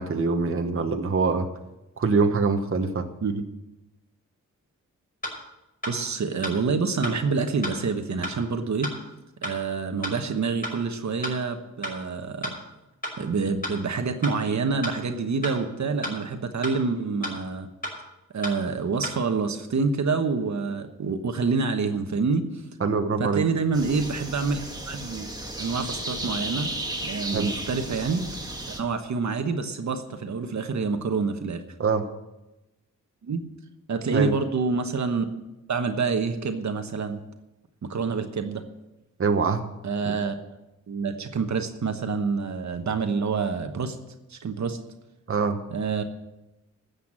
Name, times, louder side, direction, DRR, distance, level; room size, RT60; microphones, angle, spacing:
voice 1, 0.0-1.5 2.0-3.1 22.8-23.4 27.3-27.5 31.8-32.0 34.1-34.3 39.2-39.6 40.1-40.2 45.3-45.6, right 4 dB, 40° right, 5 dB, 1.1 m, -24 dB
sound 1, 5.2-5.3 5.8-5.9 6.4-6.5 7.0-7.1 7.6-7.7 8.2-8.3 8.8-8.9 9.4-9.5 10.0-10.1 10.6-10.7 11.2-11.3 11.8-11.9 12.4-12.5 13.0-13.1 13.6-13.7 14.2-14.3 14.8-14.9 15.4-15.5 16.0-16.1 16.6-16.7 17.2-17.3 17.8-17.9 18.4-18.5 19.0-19.1, left 1 dB, 25° left, 5.7 m, -31 dB
voice 2, 5.9-8.9 9.4-12.6 13.2-17.7 18.3-22.5 23.2-25.3 25.6-26.7 27.0-28.3 28.7-31.6 33.2-33.4 33.9-35.2 35.7-37.2 37.8-38.6 39.8-40.3 40.9-44.0 44.3-44.8 45.7-46.0, right 4 dB, 60° right, 7 dB, 1.2 m, -27 dB
sound 2, 23.7-28.8, right 1 dB, 10° right, 1.8 m, -34 dB
13.5 x 8.2 x 7.5 m, 0.98 s
wide cardioid pair, 105°, 32 cm